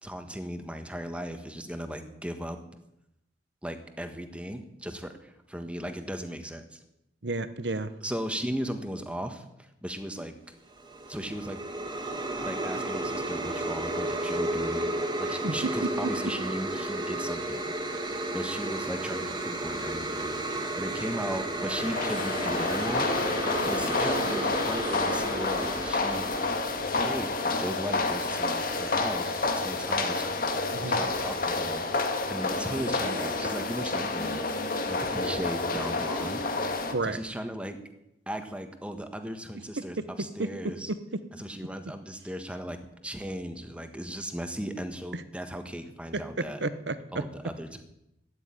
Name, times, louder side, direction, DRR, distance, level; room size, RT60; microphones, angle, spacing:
voice 1, 0.0-2.6 3.6-6.8 8.0-10.3 11.1-11.6 12.4-14.9 15.2-17.6 18.3-23.1 23.6-26.3 26.9-30.3 30.7-31.9 32.3-34.4 34.8-36.4 37.0-37.8 38.3-40.9 41.3-46.6 47.1-47.8, equal, 5° right, 7 dB, 1.4 m, -37 dB
voice 2, 7.2-7.9 15.4-16.1 30.7-31.0 36.9-37.2 46.6-47.2, right 3 dB, 75° right, 13 dB, 1.1 m, -31 dB
sound 1, 10.7-27.2, right 1 dB, 25° right, 1.9 m, -33 dB
sound 2, 21.7-36.9, left 3 dB, 55° left, 1.9 m, -29 dB
13.0 x 9.9 x 9.9 m, 0.85 s
head